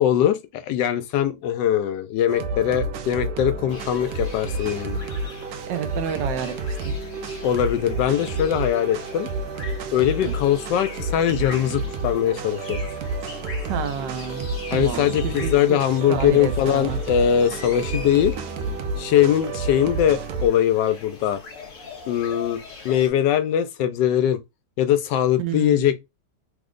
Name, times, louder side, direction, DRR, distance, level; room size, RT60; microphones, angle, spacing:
voice 1, 0.0-5.0 7.4-9.3 9.9-12.8 14.7-18.4 19.0-21.4 22.1-24.4 24.8-26.0, left 10 dB, 85° left, 1.2 m, -21 dB
sound 1, 2.3-20.5, right 2 dB, 70° right, 0.9 m, -30 dB
sound 2, 3.7-23.1, left 4 dB, 50° left, 0.6 m, -42 dB
voice 2, 5.7-7.0 10.2-10.3 13.7-15.8 16.1-17.0 25.4-25.9, right 8 dB, 90° right, 1.3 m, -30 dB
3.3 x 2.1 x 3.6 m
omnidirectional pair, 1.8 m